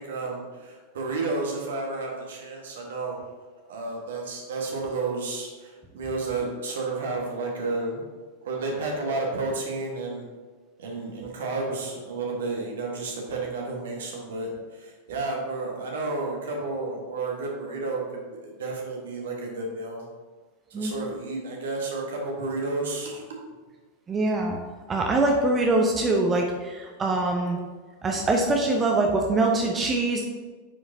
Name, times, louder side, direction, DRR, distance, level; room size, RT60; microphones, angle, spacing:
voice 1, 0.0-3.3 3.7-8.0 8.4-10.2 10.8-20.1 20.7-23.2, right 3 dB, 60° right, -1 dB, 1.4 m, -31 dB
voice 2, 24.1-24.6 24.9-27.6 28.0-30.2, right 2 dB, 20° right, 1 dB, 0.7 m, -23 dB
9.1 x 4.9 x 2.7 m, 1.4 s
figure-of-eight pair, 90°, 0 cm